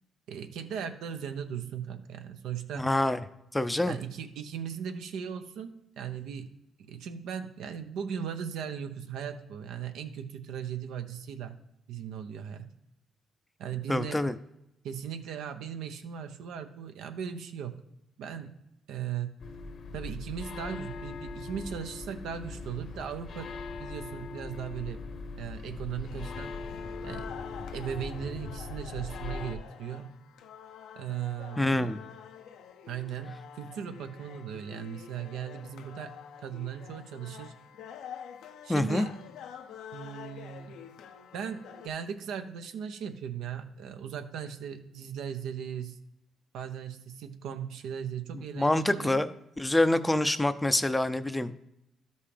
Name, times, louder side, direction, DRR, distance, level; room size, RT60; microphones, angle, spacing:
voice 1, 0.3-2.9 3.9-6.5 6.9-11.5 11.9-12.7 13.6-14.3 14.8-17.8 18.2-18.6 18.9-19.3 19.9-23.5 23.8-25.0 25.4-26.6 27.0-27.3 27.7-30.1 31.0-31.9 32.9-36.1 36.4-37.5 38.6-39.2 39.9-40.8 41.3-46.0 46.5-49.2, right 8 dB, 85° right, 7 dB, 0.7 m, -38 dB
voice 2, 2.7-3.2 3.5-4.0 13.9-14.3 31.6-32.0 38.7-39.1 48.5-51.5, left 1 dB, 10° left, 12 dB, 0.5 m, -26 dB
sound 1, 19.4-29.6, left 3 dB, 60° left, 0.9 m, -40 dB
sound 2, 26.1-41.9, left 8 dB, 85° left, 0.6 m, -47 dB
12.5 x 5.5 x 3.3 m, 0.85 s
cardioid pair, 90°, 0 cm